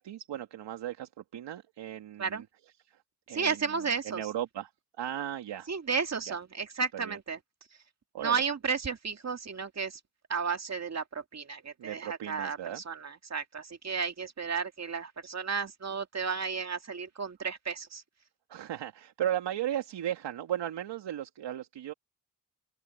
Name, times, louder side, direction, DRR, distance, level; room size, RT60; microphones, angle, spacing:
voice 1, 0.0-2.5 2.9-3.0 3.3-4.7 5.0-5.7 6.3-6.4 6.9-7.2 8.1-8.4 11.8-12.8 18.5-21.9, right 11 dB, 75° right, 2.4 m, -36 dB
voice 2, 3.3-4.2 5.7-7.4 8.2-10.0 10.3-18.0, right 5 dB, 35° right, 2.2 m, -33 dB
open air
supercardioid pair, 55°, 43 cm